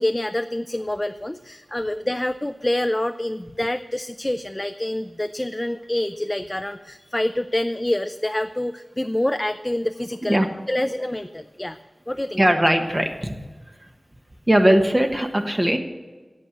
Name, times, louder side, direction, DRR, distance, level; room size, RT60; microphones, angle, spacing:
voice 1, 0.0-10.4 10.7-11.8 12.1-12.4, left 1 dB, 25° left, 9 dB, 0.4 m, -26 dB
voice 2, 12.4-13.4 13.8-13.9 14.5-15.8, right 1 dB, 25° right, 4 dB, 1.3 m, -19 dB
8.6 x 8.1 x 9.2 m, 1.3 s
wide cardioid pair, 55°, 0 cm